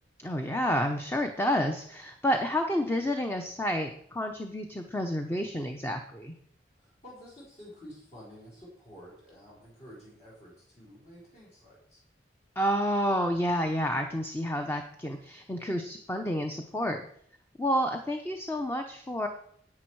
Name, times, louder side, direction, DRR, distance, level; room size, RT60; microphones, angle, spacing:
voice 1, 0.2-6.3 12.6-17.0 17.6-19.3, equal, 15° left, 5 dB, 0.7 m, -29 dB
voice 2, 6.8-12.0, equal, 40° left, -6 dB, 4.3 m, -50 dB
10.5 x 8.5 x 4.7 m, 0.64 s
head